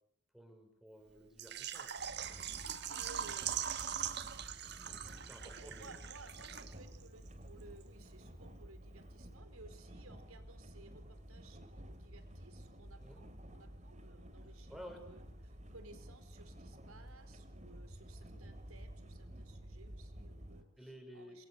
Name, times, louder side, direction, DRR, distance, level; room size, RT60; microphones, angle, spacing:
voice 1, 0.3-1.9 5.2-5.9 13.0-13.2 14.7-15.1 20.8-21.4, equal, ahead, 4 dB, 5.8 m, -53 dB
Water / Liquid, 1.4-7.0 7.3-7.4 7.8-7.9, right 9 dB, 50° right, 1.5 m, -41 dB
sound 1, 2.0-20.6, equal, 35° right, 3.0 m, -52 dB
voice 2, 2.9-4.7 5.4-21.5, right 3 dB, 85° right, 10 dB, 4.6 m, -58 dB
27.5 x 23.5 x 8.0 m, 0.75 s
head